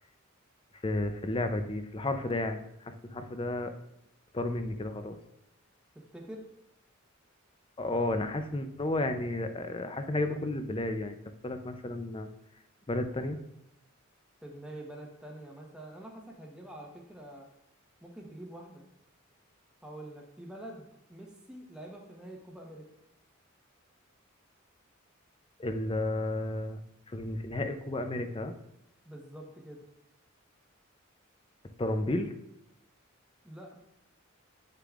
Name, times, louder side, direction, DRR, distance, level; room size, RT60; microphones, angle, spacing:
voice 1, 0.8-3.7 4.3-5.2 7.8-11.2 11.4-12.3 12.9-13.4 25.6-26.8 27.1-28.5 31.8-32.3, left 2 dB, 25° left, 8 dB, 0.5 m, -32 dB
voice 2, 5.9-6.4 14.4-17.5 18.0-18.8 19.8-22.9 29.0-29.8 33.4-33.8, right 1 dB, 5° right, -1 dB, 1.1 m, -46 dB
9.5 x 6.6 x 2.5 m, 0.81 s
head